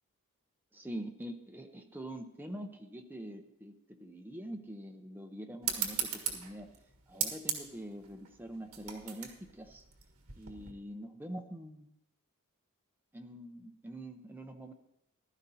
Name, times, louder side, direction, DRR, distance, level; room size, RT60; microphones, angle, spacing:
voice 1, 0.7-3.7 4.0-6.7 7.1-9.8 10.4-11.9 13.1-14.7, right 1 dB, 10° right, 4 dB, 0.8 m, -44 dB
sound 1, 5.6-10.7, right 8 dB, 70° right, 1.5 m, -38 dB
15.0 x 12.0 x 2.8 m, 0.79 s
head